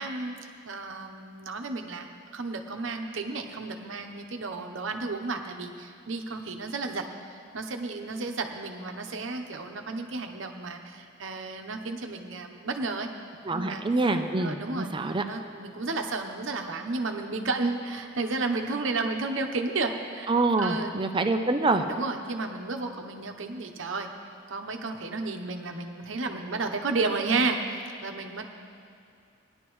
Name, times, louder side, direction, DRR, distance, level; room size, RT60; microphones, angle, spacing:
voice 1, 0.0-13.1 13.5-13.8 14.4-14.9 15.3-20.3 20.6-20.9 21.9-24.1 24.5-28.4, right 3 dB, 70° right, 4 dB, 0.9 m, -32 dB
voice 2, 13.5-15.2 20.3-21.8, right 3 dB, 25° right, 6 dB, 0.5 m, -26 dB
18.5 x 11.0 x 3.1 m, 2.4 s
head